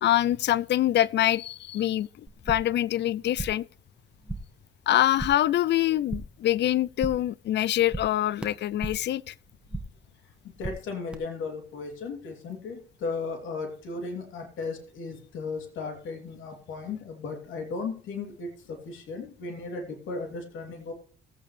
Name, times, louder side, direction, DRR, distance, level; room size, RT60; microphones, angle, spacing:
voice 1, 0.0-3.7 4.9-9.3, left 13 dB, 60° left, 0.4 m, -25 dB
sound 1, 2.3-2.8 3.1-3.7 4.0-4.6 4.9-5.5 5.8-6.5 6.7-7.4 7.6-9.1 9.4-10.1 10.3-11.1, right 1 dB, 5° right, 1.7 m, -38 dB
voice 2, 10.4-20.9, left 4 dB, 80° left, 3.1 m, -36 dB
19.0 x 8.5 x 3.3 m
cardioid pair, 90°, 20 cm